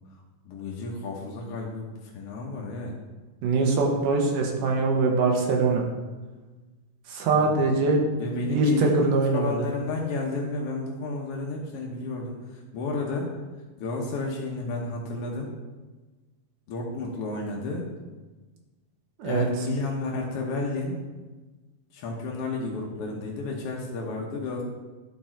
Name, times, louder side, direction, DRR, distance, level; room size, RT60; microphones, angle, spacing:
voice 1, 0.4-2.9 7.3-7.5 8.2-13.3 13.8-15.5 16.7-17.9 19.2-21.0 21.9-24.6, left 3 dB, 70° left, -1 dB, 1.4 m, -32 dB
voice 2, 3.4-5.8 7.1-8.0 8.5-9.6 19.2-19.5, right 3 dB, 75° right, 1 dB, 2.6 m, -23 dB
10.0 x 4.8 x 4.4 m, 1.2 s
omnidirectional pair, 3.9 m